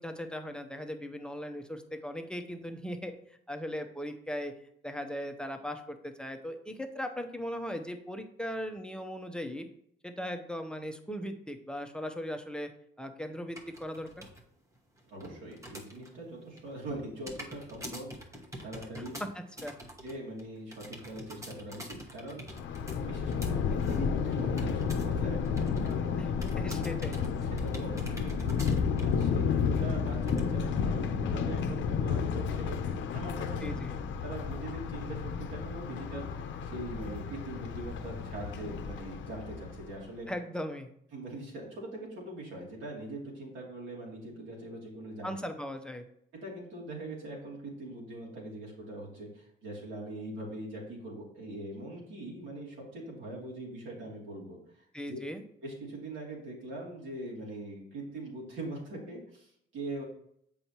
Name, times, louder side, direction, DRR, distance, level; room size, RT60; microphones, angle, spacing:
voice 1, 0.0-3.1 3.5-4.5 4.8-9.7 10.0-12.7 13.0-14.3 19.2-19.7 26.2-26.3 26.6-27.2 33.6-34.0 40.3-40.9 45.2-46.0 54.9-55.4, equal, 5° left, 5 dB, 0.7 m, -38 dB
sound 1, 13.6-14.4 14.7-16.2 16.4-25.2 25.5-26.0 26.4-29.4 29.8-29.9 30.3-30.4, equal, 15° right, 1.2 m, -45 dB
voice 2, 15.1-19.2 20.0-22.6 23.0-26.3 27.5-32.8 33.1-33.8 34.2-40.3 41.1-45.3 46.4-54.6 55.1-55.2 55.6-60.0, right 1 dB, 75° right, -4 dB, 2.7 m, -42 dB
Thunder, 22.5-39.9, left 6 dB, 70° left, 0.6 m, -32 dB
7.6 x 5.5 x 2.9 m, 0.71 s
cardioid pair, 90°, 20 cm